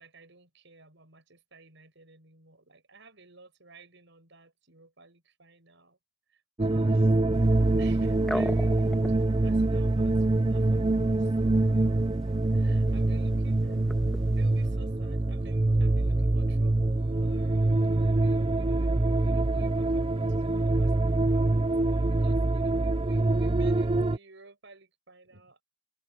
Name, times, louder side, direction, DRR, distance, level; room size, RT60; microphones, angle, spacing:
voice 1, 0.0-6.0 6.3-7.1 7.8-12.2 12.5-13.6 14.4-25.6, right 3 dB, 60° right, 7.8 m, -55 dB
sound 1, 6.6-24.2, right 2 dB, 25° right, 0.6 m, -25 dB
voice 2, 6.7-7.9 12.8-14.0 22.3-22.8 25.3-25.5, right 1 dB, 75° right, 5.4 m, -54 dB
sound 2, 7.3-14.7, equal, ahead, 1.4 m, -41 dB
head